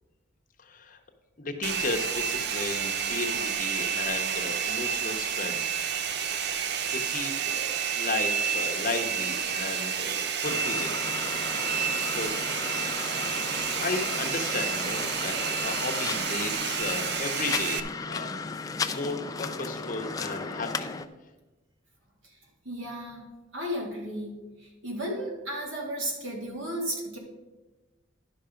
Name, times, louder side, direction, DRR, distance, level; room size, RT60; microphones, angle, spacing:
voice 1, 0.6-1.0 1.4-5.6 6.8-11.0 12.0-12.3 13.2-13.3 13.8-18.4 18.9-20.9, left 3 dB, 40° left, 4 dB, 0.9 m, -34 dB
Domestic sounds home sounds, 1.6-17.8, right 7 dB, 55° right, 0.5 m, -30 dB
sound 1, 10.4-21.1, left 4 dB, 20° left, 0.4 m, -35 dB
voice 2, 22.6-23.2 23.5-24.4 24.8-27.2, equal, 75° right, -1 dB, 2.5 m, -33 dB
11.0 x 5.8 x 5.1 m, 1.1 s
head